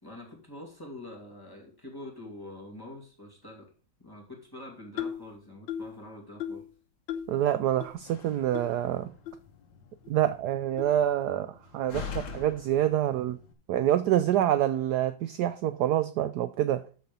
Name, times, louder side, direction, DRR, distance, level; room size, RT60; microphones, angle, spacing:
voice 1, 0.0-3.7 4.0-6.6, left 1 dB, 10° left, 2.5 m, -45 dB
sound 1, 5.0-5.3 5.7-6.0 6.4-6.7 7.1-7.4 7.8-7.9 8.5-8.7 9.3-9.4 10.0-10.1 10.8-10.9, left 9 dB, 90° left, 1.7 m, -36 dB
voice 2, 7.3-9.1 10.1-13.4 13.7-16.8, right 11 dB, 70° right, 1.0 m, -26 dB
Slam, 7.9-13.5, left 7 dB, 70° left, 1.9 m, -44 dB
12.5 x 4.3 x 5.3 m
omnidirectional pair, 2.1 m